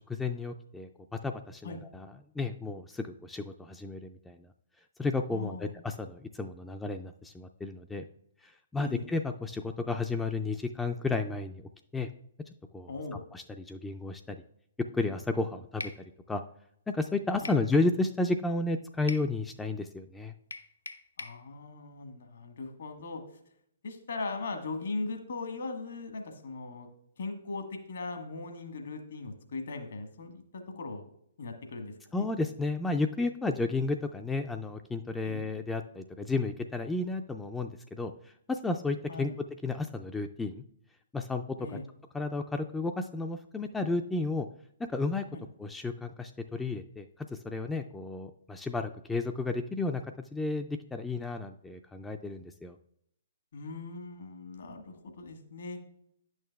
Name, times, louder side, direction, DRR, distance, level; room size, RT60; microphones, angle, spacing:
voice 1, 0.1-2.1 2.4-4.5 5.0-8.0 8.4-12.1 12.7-12.9 13.3-14.4 14.9-15.9 16.3-16.4 16.9-20.3 32.1-39.3 39.6-40.6 41.1-41.6 42.1-44.5 44.9-45.3 45.6-47.1 47.3-52.8, left 3 dB, 10° left, 6 dB, 0.3 m, -32 dB
voice 2, 5.3-5.8 8.8-9.1 12.9-13.2 17.4-17.6 21.2-23.2 23.8-26.9 27.2-30.4 30.7-31.0 31.4-32.3 35.2-35.4 39.1-39.4 41.6-41.9 45.3-45.4 53.5-55.8, left 3 dB, 65° left, 5 dB, 1.3 m, -39 dB
sound 1, 15.8-16.0 17.5-17.7 19.1-19.3 20.5-21.4, left 3 dB, 80° left, 0.6 m, -41 dB
10.5 x 6.4 x 2.3 m, 0.71 s
figure-of-eight pair, 125°, 0 cm